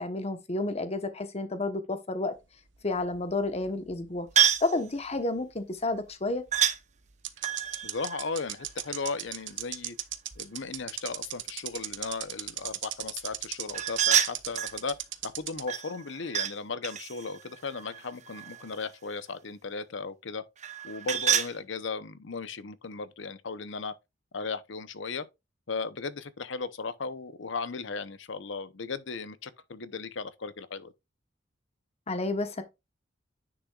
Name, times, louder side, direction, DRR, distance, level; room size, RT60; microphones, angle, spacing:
voice 1, 0.0-2.3 2.8-4.3 4.6-6.4 32.1-32.6, left 2 dB, 35° left, 1.1 m, -30 dB
sound 1, 2.7-4.3 4.6-4.7 6.5-6.6 7.2-15.6, right 13 dB, 65° right, 0.9 m, -36 dB
sound 2, 4.4-4.7 6.5-6.8 7.4-9.2 13.7-14.8 15.7-16.5 16.8-18.7 20.6-21.5, right 9 dB, 40° right, 0.9 m, -28 dB
voice 2, 7.8-10.0 10.4-15.0 15.2-20.4 20.8-23.9 24.3-25.3 25.7-30.9, left 4 dB, 65° left, 0.8 m, -36 dB
10.0 x 6.1 x 2.4 m
head